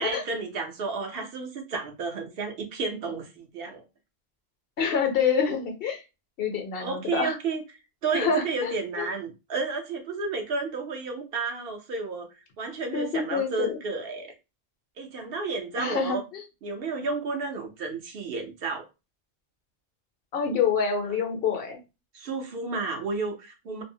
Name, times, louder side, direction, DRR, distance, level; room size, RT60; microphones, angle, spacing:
voice 1, 0.0-3.8 6.8-7.6 8.0-12.3 12.6-14.3 15.0-16.2 16.6-18.9 21.1-21.2 22.1-23.8, right 4 dB, 65° right, 0.8 m, -32 dB
voice 2, 4.8-6.0 6.4-7.4 8.1-9.1 12.9-13.8 15.8-16.4 20.3-21.8, left 6 dB, 60° left, 0.9 m, -27 dB
2.6 x 2.0 x 2.6 m
omnidirectional pair, 1.1 m